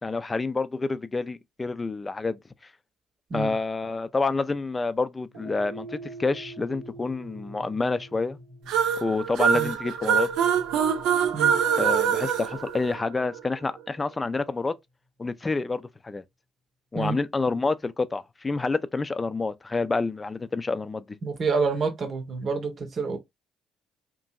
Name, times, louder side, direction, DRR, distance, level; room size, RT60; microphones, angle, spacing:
voice 1, 0.0-2.4 3.3-8.4 9.0-10.3 11.8-14.7 15.2-16.2 16.9-21.0, left 3 dB, 25° left, 0.4 m, -28 dB
sound 1, 5.3-13.8, right 2 dB, 90° right, 1.1 m, -46 dB
sound 2, 8.7-13.4, right 7 dB, 70° right, 0.4 m, -24 dB
voice 2, 21.2-23.2, right 4 dB, 50° right, 0.8 m, -28 dB
2.9 x 2.5 x 2.3 m
hypercardioid pair, 50°, 0 cm